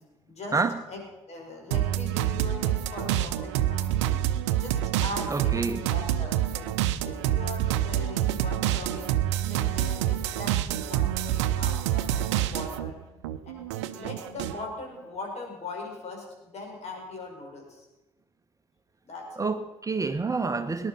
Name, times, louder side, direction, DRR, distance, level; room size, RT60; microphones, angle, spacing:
voice 1, 0.3-0.6 0.9-1.0 1.3-4.2 4.6-6.7 7.0-9.1 9.5-12.2 12.5-13.0 13.4-13.6 13.9-17.9 19.0-19.3, left 2 dB, 45° left, 0 dB, 5.5 m, -40 dB
sound 1, 1.7-12.9 13.2-14.6, right 12 dB, 75° right, 0.7 m, -27 dB
voice 2, 5.3-5.8 19.4-20.9, right 4 dB, 20° right, 8 dB, 1.0 m, -28 dB
19.0 x 10.5 x 5.6 m, 1.0 s
hypercardioid pair, 50°, 15 cm